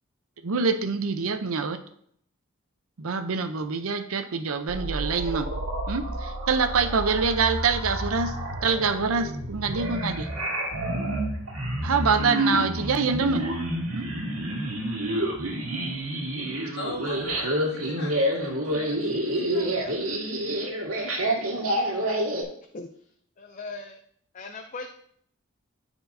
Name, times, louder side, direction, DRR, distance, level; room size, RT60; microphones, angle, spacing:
voice 1, 0.4-1.8 3.0-5.5 5.9-8.3 8.6-10.3 11.8-13.5 13.9-14.1 15.7-15.8, right 5 dB, 75° right, 10 dB, 0.6 m, -25 dB
sound 1, 4.7-22.4, right 1 dB, 90° right, 1.8 m, -29 dB
voice 2, 16.8-20.0 20.4-20.6, left 1 dB, 50° left, -2 dB, 2.0 m, -40 dB
voice 3, 23.4-23.9 24.3-24.9, left 3 dB, 35° left, 5 dB, 0.4 m, -38 dB
13.5 x 4.5 x 2.7 m, 0.66 s
head